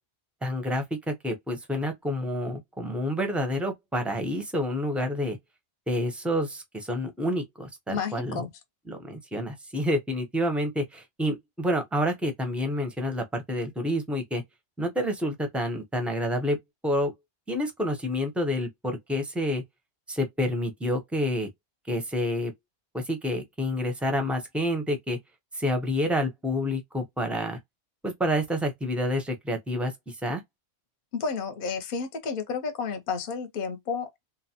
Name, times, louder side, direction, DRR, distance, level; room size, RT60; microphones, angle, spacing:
voice 1, 0.4-5.4 5.9-8.4 8.9-14.4 14.8-16.6 16.8-17.1 17.5-19.6 20.1-21.5 21.9-22.5 22.9-25.2 25.6-27.6 28.0-29.9 30.2-30.4, equal, ahead, 0.5 m, -28 dB
voice 2, 7.9-8.5 31.1-34.3, left 5 dB, 55° left, 0.8 m, -31 dB
3.1 x 2.0 x 2.7 m
omnidirectional pair, 1.1 m